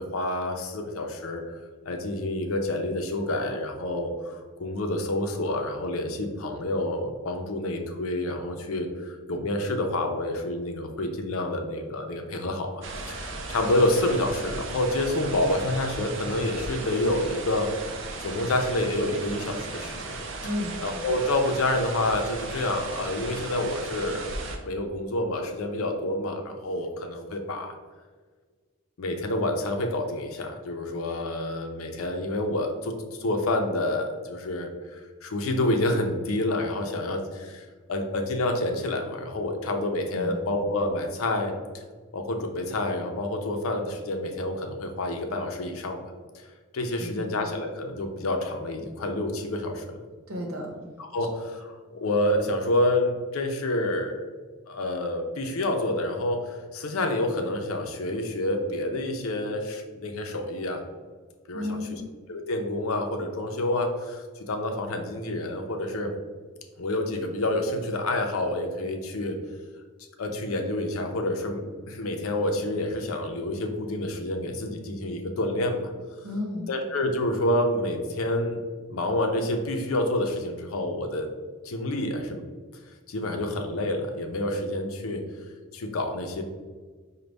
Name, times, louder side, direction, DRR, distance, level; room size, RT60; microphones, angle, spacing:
voice 1, 0.0-1.4 1.9-17.9 18.2-20.2 20.8-24.3 24.6-27.8 29.0-41.5 42.1-46.0 46.7-50.0 51.1-54.2 54.7-60.8 61.5-62.0 62.3-66.1 66.8-69.4 70.2-75.9 76.7-78.6 78.9-81.3 81.6-82.4 83.1-85.2 85.7-86.4, left 1 dB, 90° left, 4 dB, 0.5 m, -28 dB
sound 1, 12.8-24.6, right 3 dB, 65° right, 0.5 m, -36 dB
voice 2, 20.4-20.8 40.1-40.4 47.0-47.4 50.3-50.7 61.5-62.0 76.2-76.7, left 1 dB, 85° right, 1 dB, 0.8 m, -32 dB
5.1 x 2.2 x 3.3 m, 1.5 s
head